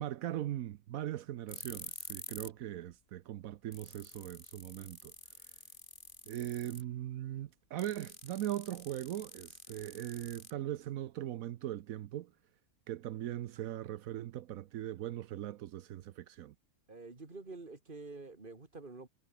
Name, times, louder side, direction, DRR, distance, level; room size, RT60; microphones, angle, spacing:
voice 1, 0.0-5.1 6.3-12.3 12.9-16.5, right 13 dB, 80° right, 1.1 m, -40 dB
sound 1, 1.5-2.6 2.9-3.0 3.4-3.5 3.7-6.9 7.8-10.9, left 2 dB, 35° left, 3.3 m, -49 dB
voice 2, 16.9-19.1, right 3 dB, 35° right, 2.7 m, -48 dB
omnidirectional pair, 1.4 m